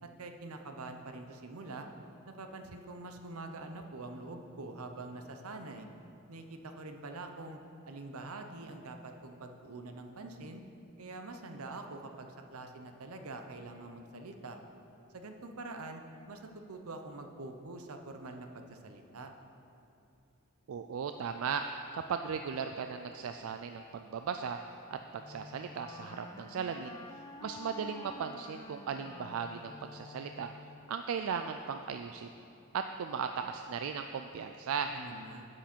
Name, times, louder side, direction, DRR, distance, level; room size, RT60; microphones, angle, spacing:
voice 1, 0.0-1.9 2.3-5.9 6.3-7.6 7.8-10.6 11.0-14.6 15.1-19.3 34.9-35.5, right 2 dB, 85° right, 6 dB, 0.8 m, -45 dB
voice 2, 20.7-21.6 21.9-24.6 24.9-27.0 27.4-30.5 30.9-32.3 32.7-34.9, right 6 dB, 70° right, 7 dB, 0.3 m, -37 dB
Wind instrument woodwind instrument, 25.2-30.9, left 3 dB, 20° left, 0.4 m, -49 dB
11.0 x 7.4 x 4.4 m, 2.7 s
head